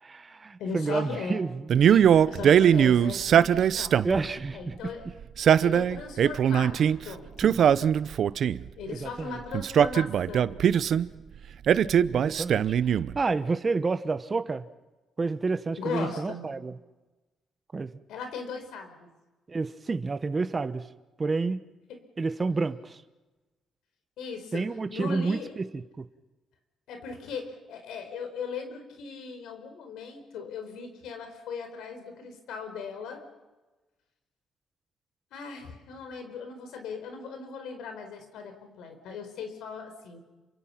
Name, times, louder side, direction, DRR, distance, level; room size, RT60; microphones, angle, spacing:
voice 1, 0.0-2.1 4.0-4.9 7.4-7.6 8.9-9.4 12.1-12.8 13.1-14.6 15.2-16.7 17.7-17.9 19.5-20.9 21.2-21.6 22.2-23.0 24.5-26.1, right 4 dB, 30° right, 11 dB, 1.0 m, -30 dB
voice 2, 0.6-1.4 2.1-4.1 4.5-5.1 5.6-7.6 8.7-10.6 15.8-16.5 18.1-19.1 21.9-22.0 24.2-25.5 26.9-33.2 35.3-40.2, left 5 dB, 85° left, 6 dB, 4.8 m, -38 dB
Male speech man speaking, 1.7-4.3 5.2-7.0 7.4-8.7 9.5-11.1 11.7-13.2, right 9 dB, 60° right, 0.7 m, -21 dB
28.0 x 25.0 x 5.9 m, 1.2 s
cardioid pair, 105°, 0 cm